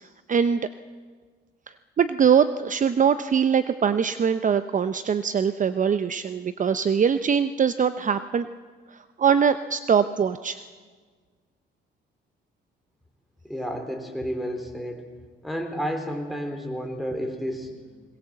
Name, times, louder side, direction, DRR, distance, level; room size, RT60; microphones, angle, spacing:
voice 1, 0.3-0.6 2.0-8.5 9.2-10.6, right 7 dB, 40° right, 12 dB, 0.7 m, -22 dB
voice 2, 13.4-15.1 15.4-18.0, equal, ahead, 5 dB, 4.0 m, -31 dB
21.5 x 19.5 x 7.7 m, 1.5 s
cardioid pair, 90°, 20 cm